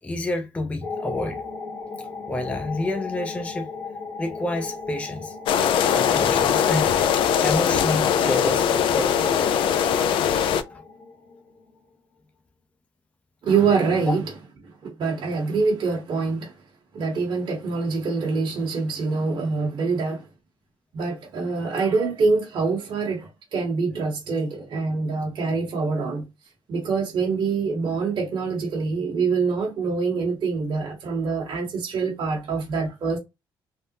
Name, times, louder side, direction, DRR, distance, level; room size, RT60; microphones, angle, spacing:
voice 1, 0.0-1.4 2.0-3.7 4.2-5.4 5.9-7.0 7.4-9.4 10.7-10.8 14.1-14.2, left 2 dB, 15° left, 0.5 m, -29 dB
sound 1, 0.8-12.0, left 4 dB, 90° left, 1.6 m, -37 dB
sound 2, 5.5-10.6, left 8 dB, 75° left, 0.4 m, -21 dB
voice 2, 13.4-14.2 14.8-16.5 16.9-20.3 20.9-26.3 26.7-33.2, right 4 dB, 60° right, 1.2 m, -25 dB
3.4 x 2.0 x 2.7 m
cardioid pair, 90°, 9 cm